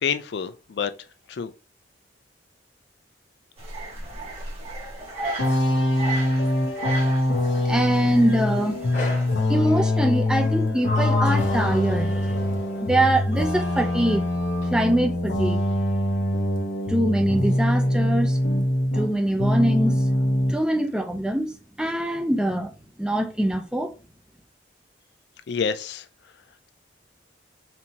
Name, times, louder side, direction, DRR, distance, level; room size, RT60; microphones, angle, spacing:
voice 1, 0.0-0.9 1.3-1.5 25.5-26.0, left 6 dB, 60° left, 0.4 m, -27 dB
sound 1, 3.6-9.3, right 2 dB, 35° right, 1.4 m, -35 dB
sound 2, 5.4-19.1 19.4-20.6, left 1 dB, 75° left, 0.8 m, -23 dB
voice 2, 7.6-9.2 9.5-14.3 14.6-15.7 16.9-18.4 18.9-22.7 23.0-23.9, right 1 dB, 5° right, 0.5 m, -24 dB
Sliding door, 8.9-9.4 10.4-12.8 13.3-14.7, left 1 dB, 40° left, 1.1 m, -34 dB
4.4 x 2.7 x 2.8 m
head